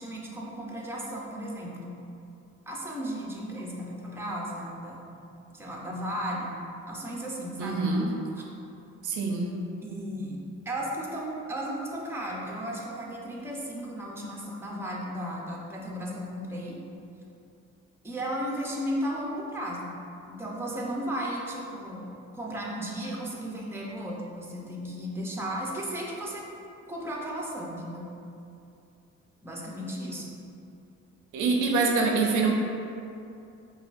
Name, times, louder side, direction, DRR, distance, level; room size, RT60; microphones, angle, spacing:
voice 1, 0.0-2.0 2.7-5.1 5.5-7.8 8.3-8.4 9.8-16.8 18.0-20.0 20.3-26.5 26.9-28.1 29.4-30.3, equal, 10° right, -3 dB, 0.6 m, -35 dB
voice 2, 7.6-8.1 9.0-9.5 31.3-32.5, right 4 dB, 80° right, 0 dB, 0.6 m, -25 dB
5.7 x 2.3 x 2.5 m, 2.6 s
cardioid pair, 90°, 30 cm